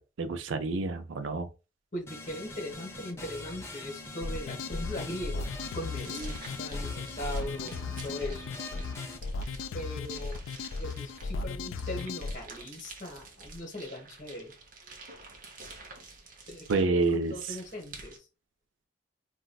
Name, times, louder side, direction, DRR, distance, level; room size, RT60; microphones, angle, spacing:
voice 1, 0.0-1.5 16.7-17.6, right 3 dB, 80° right, 0.4 m, -29 dB
voice 2, 1.9-8.5 9.7-10.5 10.8-14.5 16.5-18.3, left 1 dB, 40° left, 1.2 m, -40 dB
sound 1, 2.1-9.2, left 2 dB, 15° left, 0.6 m, -44 dB
sound 2, 4.2-12.4, left 4 dB, 85° left, 0.3 m, -36 dB
sound 3, 6.0-18.2, right 3 dB, 45° right, 0.7 m, -50 dB
4.0 x 2.3 x 2.3 m
head